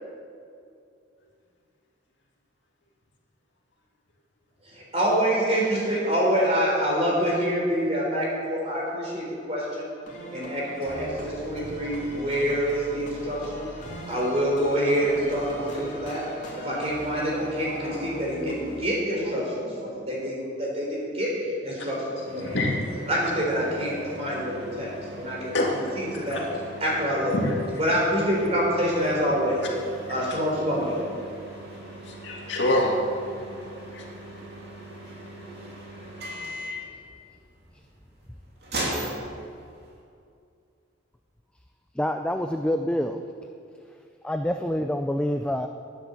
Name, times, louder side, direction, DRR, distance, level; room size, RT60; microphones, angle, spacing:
voice 1, 4.7-9.9 10.3-13.7 14.1-16.2 16.6-21.3 21.6-22.6 23.1-26.5 26.8-27.4 27.8-29.7 30.1-31.0, equal, 35° right, -4 dB, 4.0 m, -26 dB
sound 1, 10.0-18.8, equal, 40° left, 2.8 m, -41 dB
sound 2, 22.2-40.0, right 1 dB, 55° right, 2.7 m, -39 dB
voice 2, 22.4-22.7 25.5-26.4 27.3-27.7 32.0-33.0 33.9-34.0, left 1 dB, 65° left, -2 dB, 2.3 m, -26 dB
voice 3, 42.0-43.2 44.2-45.7, left 1 dB, 5° left, 5 dB, 0.4 m, -26 dB
11.5 x 10.0 x 7.0 m, 2.4 s
head